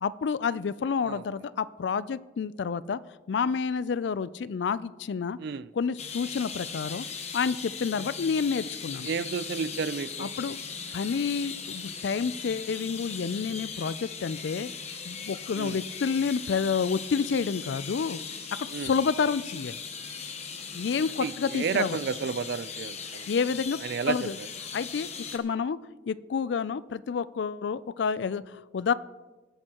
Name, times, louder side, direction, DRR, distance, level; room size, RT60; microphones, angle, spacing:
voice 1, 0.0-3.0 3.3-5.4 5.7-7.1 7.3-9.1 10.2-10.6 10.9-14.7 15.0-18.2 18.6-19.8 20.7-22.0 23.3-23.8 24.1-24.4 24.7-25.8 26.1-28.9, left 5 dB, 65° left, 0.4 m, -29 dB
voice 2, 5.4-5.7 9.0-10.3 15.5-15.8 18.7-18.9 21.2-23.3 23.8-24.5, right 5 dB, 60° right, 0.3 m, -32 dB
sound 1, 6.0-25.4, left 6 dB, 35° left, 1.0 m, -39 dB
19.5 x 9.0 x 2.9 m
head